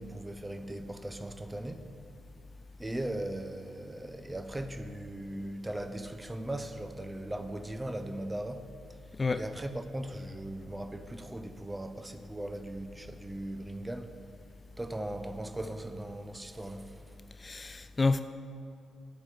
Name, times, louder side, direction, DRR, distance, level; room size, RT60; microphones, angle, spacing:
voice 1, 0.0-1.9 2.8-8.7 9.3-14.1 14.8-17.0, right 1 dB, 15° right, 0.7 m, -38 dB
voice 2, 17.4-18.2, left 3 dB, 35° left, 0.3 m, -28 dB
8.4 x 7.7 x 5.0 m
hypercardioid pair, 45°, 0 cm